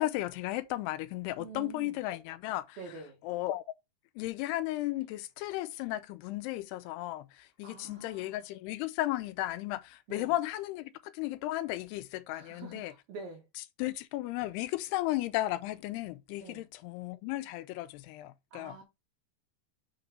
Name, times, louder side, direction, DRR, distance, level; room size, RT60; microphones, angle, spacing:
voice 1, 0.0-2.9 3.2-3.6 4.2-12.9 13.8-18.8, left 16 dB, 85° left, 2.5 m, -35 dB
voice 2, 1.4-1.9 2.8-3.2 7.6-8.4 10.1-10.3 12.3-13.4 16.4-16.6 18.5-18.8, right 4 dB, 70° right, 3.1 m, -46 dB
6.7 x 4.1 x 5.2 m
omnidirectional pair, 4.8 m